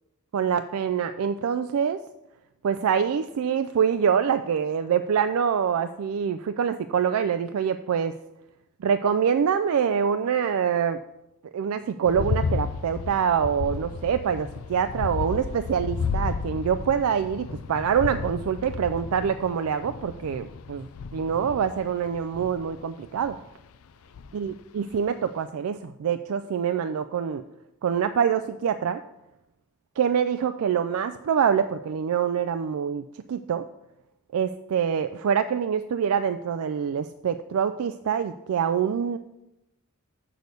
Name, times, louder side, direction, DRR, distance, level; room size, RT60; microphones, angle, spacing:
voice 1, 0.3-2.0 2.6-8.1 8.8-11.0 11.5-23.4 24.3-27.4 27.8-29.0 30.0-33.7 34.3-39.2, right 7 dB, 70° right, 10 dB, 0.3 m, -25 dB
sound 1, 12.0-23.4 24.1-24.5 25.0-25.1, left 5 dB, 70° left, 0.4 m, -33 dB
6.8 x 6.2 x 6.5 m, 0.91 s
head